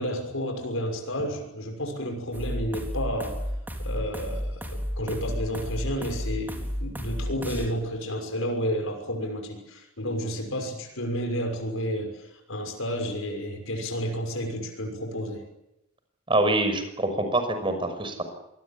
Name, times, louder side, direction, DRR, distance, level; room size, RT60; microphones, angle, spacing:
voice 1, 0.0-3.4 3.8-15.4, equal, 70° left, 4 dB, 6.2 m, -31 dB
sound 1, 2.3-7.7, equal, 10° right, 4.2 m, -32 dB
voice 2, 16.3-18.2, right 2 dB, 25° right, 8 dB, 5.9 m, -25 dB
26.0 x 21.0 x 8.7 m, 0.87 s
head